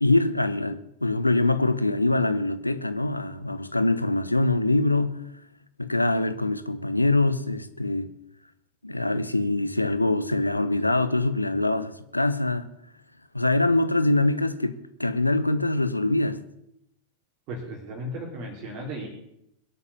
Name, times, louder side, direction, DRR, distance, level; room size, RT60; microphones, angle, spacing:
voice 1, 0.0-5.3 5.8-8.1 8.8-12.7 13.3-16.4, left 2 dB, 85° left, 0.9 m, -24 dB
voice 2, 17.5-19.1, right 1 dB, 40° right, 3.9 m, -35 dB
22.0 x 8.3 x 7.2 m
figure-of-eight pair, 90°, 0 cm